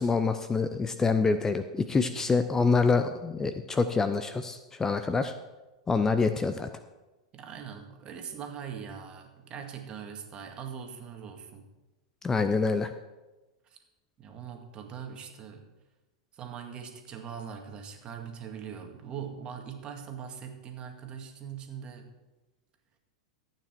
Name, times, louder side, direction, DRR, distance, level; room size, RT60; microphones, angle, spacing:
voice 1, 0.0-5.3 5.9-6.7 12.2-12.9, left 4 dB, 15° left, 9 dB, 0.6 m, -26 dB
voice 2, 7.3-11.7 13.6-13.8 14.2-15.7 16.3-22.1, right 7 dB, 30° right, 4 dB, 1.9 m, -41 dB
14.0 x 9.0 x 4.6 m, 1.1 s
hypercardioid pair, 95°, 3 cm